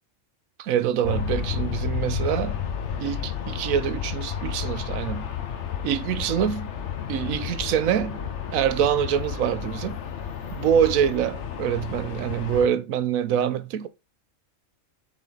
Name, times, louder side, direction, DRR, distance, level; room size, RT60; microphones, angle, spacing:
voice 1, 0.6-2.6 3.0-5.3 5.8-6.7 7.1-8.2 8.5-10.0 10.5-13.9, right 9 dB, 90° right, 1.1 m, -25 dB
Aircraft, 1.0-12.7, left 8 dB, 60° left, 1.0 m, -31 dB
7.6 x 4.0 x 3.8 m
omnidirectional pair, 1.4 m